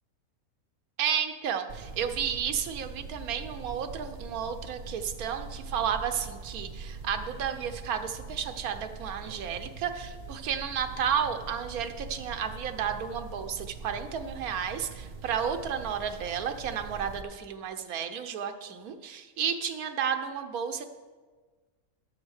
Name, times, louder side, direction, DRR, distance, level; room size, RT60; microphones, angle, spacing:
voice 1, 1.0-20.8, right 8 dB, 80° right, 8 dB, 1.3 m, -32 dB
sound 1, 1.7-17.2, right 4 dB, 40° right, 0.7 m, -43 dB
9.7 x 7.4 x 6.4 m, 1.4 s
omnidirectional pair, 1.5 m